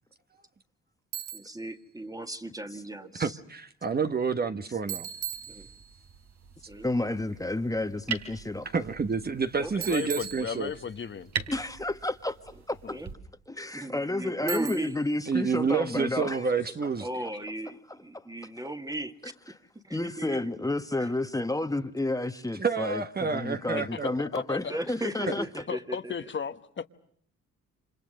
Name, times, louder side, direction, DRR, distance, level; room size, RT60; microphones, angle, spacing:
Bicycle, 1.1-1.7 4.9-6.1 9.8-11.1 14.5-15.1, right 10 dB, 85° right, 1.3 m, -39 dB
voice 1, 1.3-3.4 5.5-5.7 6.7-6.9 9.6-9.9 12.9-13.1 13.7-14.9 17.0-19.3 19.7-20.5 21.0-21.1 24.7-26.3, right 1 dB, 10° right, 2.0 m, -36 dB
voice 2, 3.2-5.1 8.7-10.7 15.3-17.1 22.6-24.2 25.3-25.4, right 5 dB, 30° right, 1.3 m, -29 dB
sound 1, 5.1-13.1, right 6 dB, 65° right, 3.6 m, -42 dB
voice 3, 6.8-8.7 11.5-13.0 13.5-16.4 19.9-25.5, left 2 dB, 10° left, 1.4 m, -31 dB
voice 4, 9.9-11.3 23.8-24.8 25.7-26.9, left 6 dB, 40° left, 1.3 m, -35 dB
28.5 x 26.5 x 6.6 m
cardioid pair, 90°, 30 cm